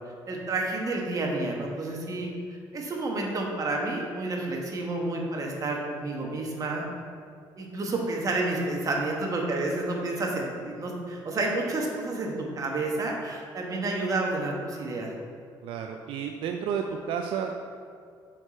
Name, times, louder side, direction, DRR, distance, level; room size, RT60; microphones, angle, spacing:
voice 1, 0.3-2.3 2.7-6.8 7.6-15.1, right 2 dB, 40° right, -1 dB, 1.3 m, -30 dB
voice 2, 15.6-17.6, right 7 dB, 80° right, 4 dB, 0.4 m, -31 dB
6.4 x 5.0 x 4.2 m, 2.2 s
cardioid pair, 95°, 9 cm